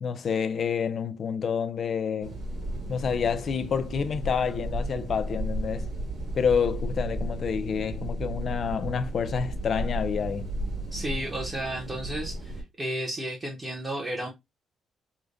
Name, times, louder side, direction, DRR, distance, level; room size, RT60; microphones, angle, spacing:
voice 1, 0.0-2.4 2.9-5.9 6.3-10.5, left 6 dB, 40° left, 0.4 m, -28 dB
sound 1, 2.2-12.6, right 1 dB, 45° right, 2.2 m, -34 dB
voice 2, 10.9-14.3, right 1 dB, 20° right, 0.7 m, -33 dB
4.8 x 2.1 x 2.6 m
cardioid pair, 170°, 0 cm